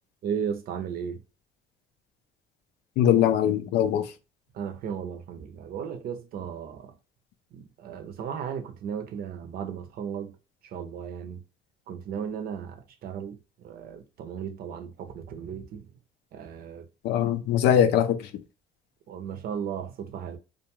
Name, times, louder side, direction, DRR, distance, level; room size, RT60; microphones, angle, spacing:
voice 1, 0.2-1.2 4.5-6.9 7.5-10.3 10.7-11.4 11.9-15.9 16.3-16.9 17.2-17.3 19.1-20.4, right 7 dB, 60° right, 0.6 m, -35 dB
voice 2, 3.0-4.1 17.0-18.3, left 10 dB, 80° left, 0.4 m, -22 dB
2.4 x 2.3 x 2.8 m
cardioid pair, 110°, 17 cm